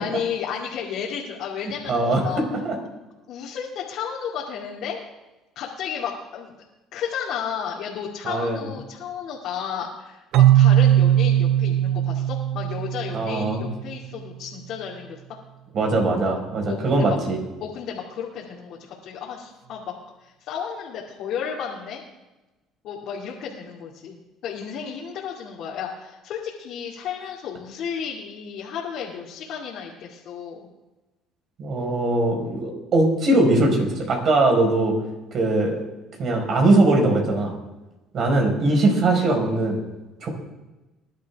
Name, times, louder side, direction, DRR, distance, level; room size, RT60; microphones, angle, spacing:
voice 1, 0.0-2.4 3.3-5.0 5.6-6.6 6.9-15.4 16.7-17.2 17.6-19.9 20.2-22.0 22.8-30.7, left 7 dB, 70° left, -4 dB, 2.4 m, -33 dB
voice 2, 1.9-2.2 2.5-2.7 8.2-8.6 13.1-13.6 15.7-17.4 31.6-34.9 35.3-35.8 36.2-37.5 38.1-39.8 40.2-40.3, right 2 dB, 50° right, 2 dB, 4.7 m, -21 dB
Keyboard (musical), 10.3-14.0, right 12 dB, 70° right, 0.4 m, -19 dB
21.5 x 11.5 x 3.5 m, 1.1 s
cardioid pair, 100°, 0 cm